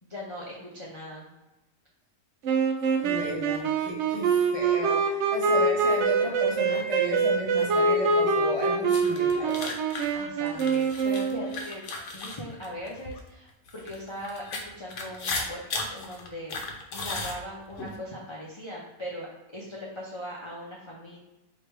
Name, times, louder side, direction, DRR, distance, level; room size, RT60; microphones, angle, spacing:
voice 1, 0.0-1.3 10.1-11.9 12.1-13.5 13.7-21.2, equal, 30° left, -5 dB, 0.5 m, -39 dB
sound 1, 2.4-11.6, right 4 dB, 65° right, 0.8 m, -25 dB
voice 2, 2.8-9.8, right 1 dB, 25° right, -5 dB, 0.9 m, -34 dB
sound 2, 8.9-13.2 13.7-18.0, left 3 dB, 60° left, 1.0 m, -35 dB
3.2 x 2.9 x 4.6 m, 1.0 s
omnidirectional pair, 1.5 m